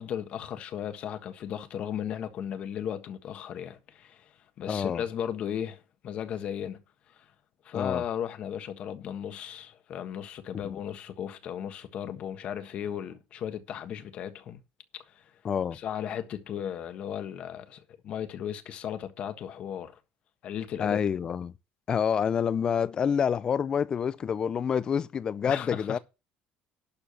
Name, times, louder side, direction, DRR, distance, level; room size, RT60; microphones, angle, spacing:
voice 1, 0.0-4.3 4.6-6.8 7.2-7.3 7.6-14.6 14.9-15.2 15.7-20.0 20.4-21.0 25.4-26.0, left 9 dB, 45° left, 1.4 m, -36 dB
voice 2, 4.7-5.0 7.7-8.0 10.5-10.7 15.4-15.8 20.8-21.5 21.9-26.0, left 7 dB, 25° left, 0.6 m, -27 dB
12.0 x 4.7 x 7.0 m
cardioid pair, 160°, 3 cm